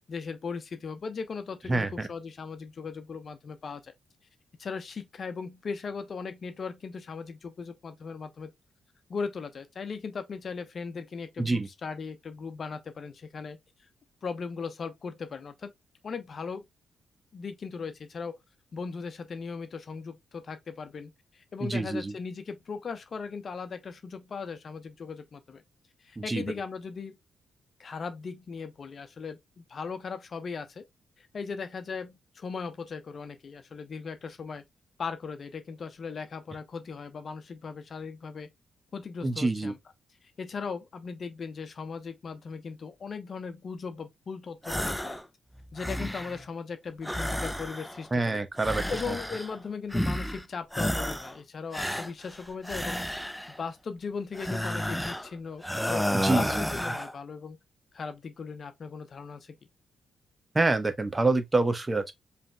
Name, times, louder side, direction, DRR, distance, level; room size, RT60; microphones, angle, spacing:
voice 1, 0.1-3.9 4.6-8.5 9.1-13.6 14.2-15.7 16.0-16.6 17.3-18.4 18.7-25.6 26.0-27.2 27.8-30.8 31.2-34.6 35.0-38.5 38.9-39.8 40.4-45.2 45.7-48.4 48.9-53.0 53.6-55.6 55.9-57.6 57.9-59.6, left 5 dB, 55° left, 0.9 m, -38 dB
voice 2, 1.7-2.1 11.4-11.7 21.6-22.1 26.2-26.4 39.2-39.7 48.1-49.1 56.1-56.6 60.5-62.1, right 3 dB, 25° right, 1.0 m, -27 dB
sound 1, 44.6-45.2 45.6-46.4 47.0-48.1 48.6-49.6 49.9-50.4 50.7-51.4 51.7-53.6 54.3-55.3 55.6-57.1, equal, 5° left, 0.6 m, -31 dB
5.0 x 3.4 x 2.3 m
hypercardioid pair, 45°, 0 cm